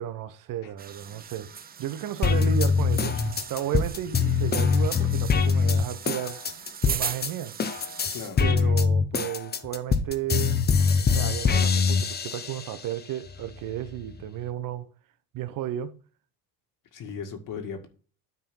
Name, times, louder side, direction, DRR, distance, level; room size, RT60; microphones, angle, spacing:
voice 1, 0.0-1.5 1.8-6.4 6.8-7.5 8.4-10.6 11.1-14.9 15.3-15.9, right 11 dB, 55° right, 0.9 m, -33 dB
sound 1, 0.8-8.3, right 7 dB, 25° right, 0.6 m, -39 dB
sound 2, 2.2-7.3 7.6-12.8 13.3-14.2, left 5 dB, 25° left, 0.8 m, -23 dB
voice 2, 8.1-8.5 14.1-14.2 16.9-17.9, left 6 dB, 55° left, 1.9 m, -37 dB
9.7 x 3.8 x 5.4 m
cardioid pair, 105°, 38 cm